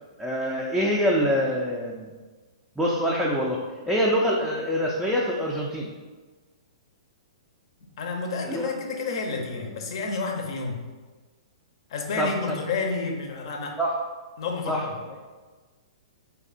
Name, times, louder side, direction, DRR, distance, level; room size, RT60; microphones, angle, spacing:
voice 1, 0.2-2.1 2.8-5.9 8.4-8.7 12.2-12.6 13.8-13.9 14.7-14.8, equal, ahead, -5 dB, 0.4 m, -25 dB
voice 2, 7.8-10.8 11.9-13.8 14.4-15.0, left 4 dB, 55° left, 2 dB, 0.6 m, -30 dB
3.3 x 2.3 x 3.8 m, 1.3 s
hypercardioid pair, 120°, 3 cm